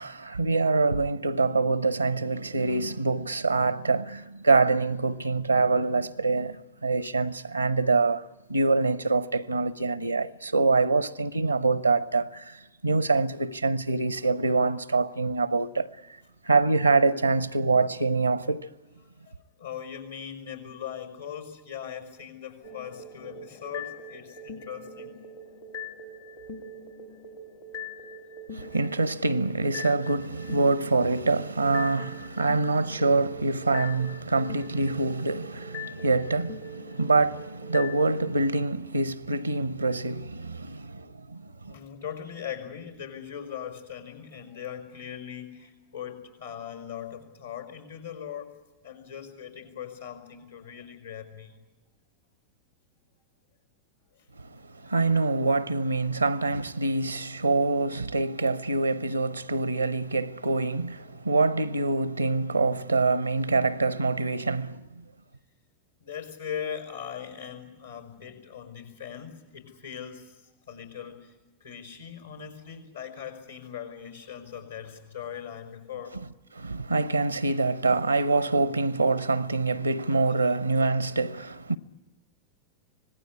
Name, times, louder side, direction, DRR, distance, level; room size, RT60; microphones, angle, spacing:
voice 1, 0.0-8.2 8.5-12.6 12.8-15.9 16.4-18.7 28.5-41.7 54.8-64.8 76.1-76.2 76.6-81.8, right 3 dB, 85° right, 0.7 m, -25 dB
voice 2, 19.6-25.2 41.7-48.5 48.8-51.5 66.0-71.3 71.6-76.2, left 8 dB, 75° left, 5.2 m, -40 dB
sound 1, 22.6-38.0, left 2 dB, 55° left, 1.9 m, -42 dB
25.5 x 18.5 x 9.8 m
figure-of-eight pair, 90°, 0 cm